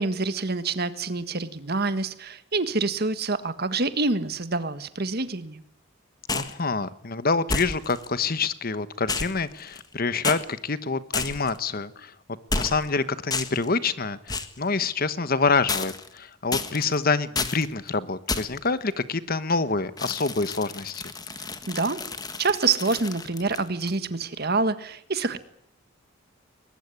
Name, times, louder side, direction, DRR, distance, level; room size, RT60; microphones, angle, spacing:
voice 1, 0.0-5.6 21.7-22.0 22.4-25.4, right 3 dB, 50° right, 12 dB, 1.6 m, -26 dB
voice 2, 6.3-12.1 12.5-21.1, left 4 dB, 45° left, 14 dB, 1.1 m, -26 dB
sound 1, 6.3-6.6 7.5-8.1 9.1-9.9 10.2-10.4 11.1-11.6 12.5-12.9 13.3-13.7 14.3-14.6 15.7-16.2 16.5-17.0 17.3-17.7 18.3-18.7 20.0-23.9, left 4 dB, 20° left, 1.5 m, -31 dB
21.5 x 20.5 x 9.8 m, 0.70 s
head